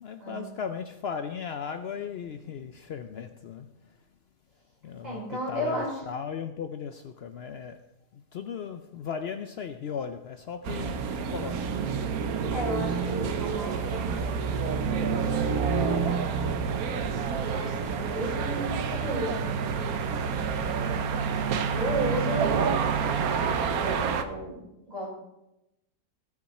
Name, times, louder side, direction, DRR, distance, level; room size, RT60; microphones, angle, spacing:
voice 1, 0.0-3.7 4.8-7.8 8.1-11.6, left 7 dB, 80° left, 8 dB, 0.5 m, -37 dB
voice 2, 5.0-6.0 11.4-11.8 12.5-14.6 15.3-16.5 17.1-20.7 21.7-24.6 24.9-25.1, right 1 dB, 25° right, -6 dB, 5.3 m, -35 dB
sound 1, 10.6-24.2, right 6 dB, 65° right, 1.2 m, -28 dB
18.5 x 6.2 x 4.2 m, 0.91 s
omnidirectional pair, 1.8 m